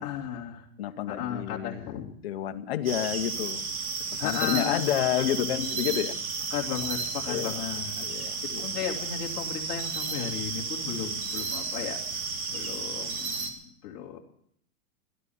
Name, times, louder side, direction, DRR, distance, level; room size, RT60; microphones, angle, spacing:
voice 1, 0.0-0.6 1.1-2.0 4.2-6.0 6.5-12.0 12.5-13.5 13.8-14.2, left 9 dB, 25° left, -2 dB, 2.3 m, -35 dB
voice 2, 0.8-3.6 4.2-6.2 7.3-7.6 8.0-8.7, left 11 dB, 40° left, 7 dB, 1.0 m, -30 dB
sound 1, 2.9-13.5, right 4 dB, 70° right, 3.3 m, -33 dB
16.5 x 11.5 x 7.1 m, 0.69 s
supercardioid pair, 175°, 45 cm